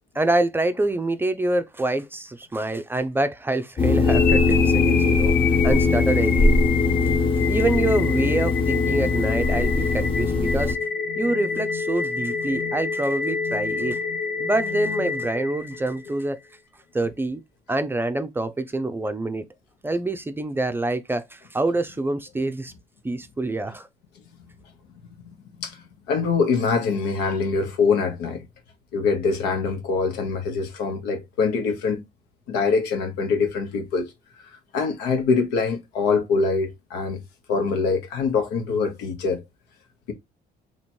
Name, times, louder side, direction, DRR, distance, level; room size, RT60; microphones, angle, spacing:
voice 1, 0.1-5.3 5.6-6.5 7.5-10.8 11.2-14.0 14.4-16.4 16.9-17.4 17.7-19.5 19.8-22.7 23.0-23.9, right 2 dB, 10° right, 0.5 m, -26 dB
sound 1, 3.8-10.7, left 3 dB, 30° left, 1.0 m, -21 dB
sound 2, 4.0-16.1, left 6 dB, 70° left, 0.6 m, -27 dB
voice 2, 25.2-28.5 28.9-32.0 32.5-34.1 34.7-37.2 37.5-39.4, left 4 dB, 90° left, 1.1 m, -24 dB
3.0 x 2.9 x 4.3 m
cardioid pair, 110°, 17 cm